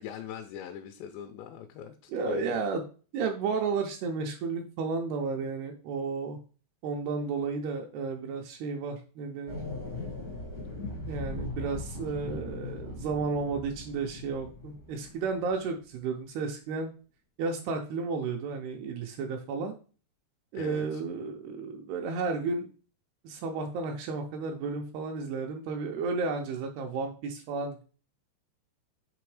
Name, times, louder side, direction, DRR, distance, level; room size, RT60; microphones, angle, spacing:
voice 1, 0.0-2.6 20.5-21.0, left 8 dB, 80° left, 5 dB, 2.8 m, -41 dB
voice 2, 2.1-2.8 3.1-6.4 6.8-9.6 11.1-16.9 17.4-19.7 20.5-22.7 23.2-27.8, right 4 dB, 80° right, 3 dB, 2.4 m, -32 dB
sound 1, 9.5-15.6, left 2 dB, 60° left, 0.9 m, -39 dB
6.9 x 3.6 x 4.8 m, 0.38 s
omnidirectional pair, 5.1 m